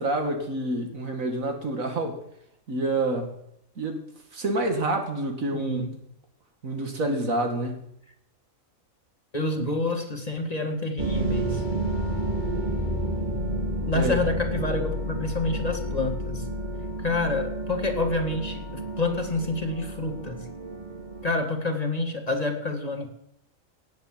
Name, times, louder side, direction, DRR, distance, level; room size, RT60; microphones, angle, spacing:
voice 1, 0.0-2.2 2.7-3.4 3.8-4.0 4.3-5.9 6.6-7.8 13.9-14.2, right 2 dB, 75° right, 4 dB, 2.5 m, -28 dB
voice 2, 5.5-6.0 9.3-11.6 13.8-16.5 17.0-18.6 19.0-20.5 21.2-23.1, left 2 dB, 30° left, 4 dB, 1.8 m, -28 dB
sound 1, 11.0-21.3, right 1 dB, 35° right, 2.0 m, -30 dB
17.5 x 8.1 x 7.6 m, 0.75 s
omnidirectional pair, 1.4 m